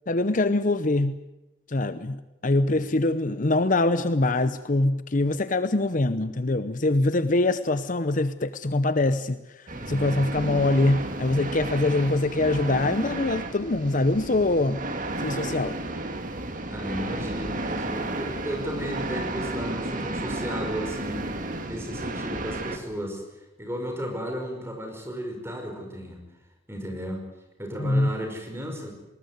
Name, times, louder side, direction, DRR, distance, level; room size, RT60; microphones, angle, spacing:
voice 1, 0.1-1.1 1.7-14.8 15.2-15.8 27.8-28.1, left 2 dB, 40° left, 12 dB, 0.8 m, -24 dB
voice 2, 9.7-10.3 16.7-21.4 21.7-23.2 23.6-26.2 26.7-27.3 27.6-28.9, equal, 15° right, 3 dB, 5.2 m, -34 dB
sound 1, 9.7-22.8, right 2 dB, 40° right, 2.2 m, -32 dB
20.5 x 19.5 x 9.5 m, 1.0 s
head